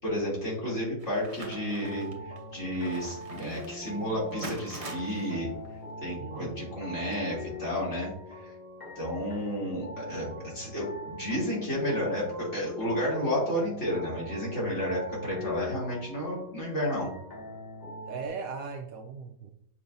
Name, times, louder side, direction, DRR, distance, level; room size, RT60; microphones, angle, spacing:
voice 1, 0.0-5.5 6.0-8.5 8.9-17.1, equal, 45° left, -6 dB, 3.1 m, -32 dB
sound 1, 1.0-7.8, right 2 dB, 30° right, 0.7 m, -46 dB
sound 2, 1.4-18.3, equal, 30° left, 1.1 m, -42 dB
voice 2, 6.2-6.7 18.1-19.5, right 5 dB, 70° right, 5 dB, 0.9 m, -38 dB
7.2 x 5.4 x 2.6 m, 0.71 s
omnidirectional pair, 1.7 m